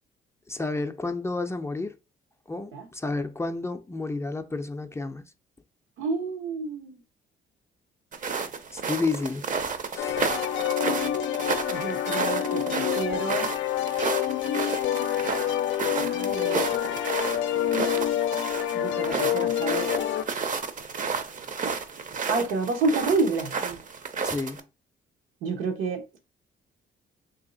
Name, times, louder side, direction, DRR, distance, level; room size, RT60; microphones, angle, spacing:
voice 1, 0.5-2.0 2.5-5.2 8.7-9.5 9.9-10.2 24.2-24.6, left 3 dB, 15° left, 0.4 m, -31 dB
voice 2, 6.0-7.0 11.7-13.5 16.0-16.6 18.7-19.9 22.3-23.8 25.4-26.2, right 3 dB, 90° right, 0.9 m, -29 dB
sound 1, 8.1-24.6, right 5 dB, 40° right, 0.6 m, -32 dB
sound 2, 10.0-20.2, left 11 dB, 75° left, 0.4 m, -27 dB
3.1 x 2.8 x 3.8 m
cardioid pair, 90°, 20 cm